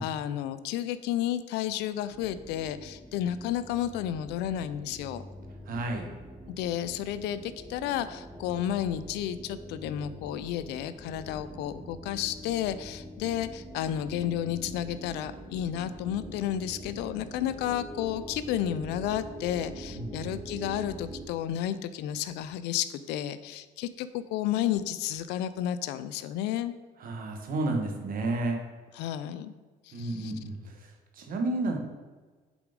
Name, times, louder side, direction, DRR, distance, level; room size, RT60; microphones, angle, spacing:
voice 1, 0.0-5.2 6.5-26.7 29.0-29.5 29.9-30.3, left 11 dB, 90° left, 13 dB, 0.5 m, -32 dB
sound 1, 2.1-21.2, right 1 dB, 5° right, 1.2 m, -44 dB
voice 2, 5.6-6.1 19.9-20.3 27.0-28.6 29.9-31.8, right 2 dB, 55° right, 3 dB, 1.5 m, -32 dB
6.9 x 4.9 x 5.2 m, 1.4 s
cardioid pair, 110°, 17 cm